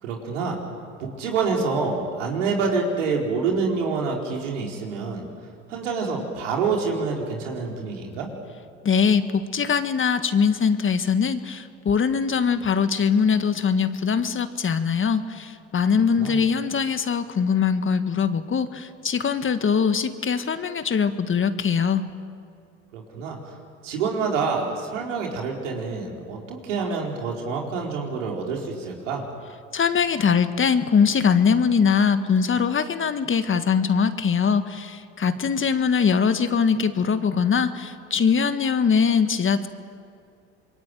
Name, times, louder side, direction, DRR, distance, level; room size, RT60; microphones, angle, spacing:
voice 1, 0.0-0.6 1.0-5.2 5.7-8.3 15.9-16.4 22.9-23.5 23.8-29.2, right 4 dB, 90° right, 0 dB, 4.5 m, -27 dB
voice 2, 8.8-22.0 29.7-39.7, left 6 dB, 35° left, 10 dB, 1.8 m, -22 dB
26.5 x 22.5 x 9.1 m, 2.4 s
hypercardioid pair, 70°, 36 cm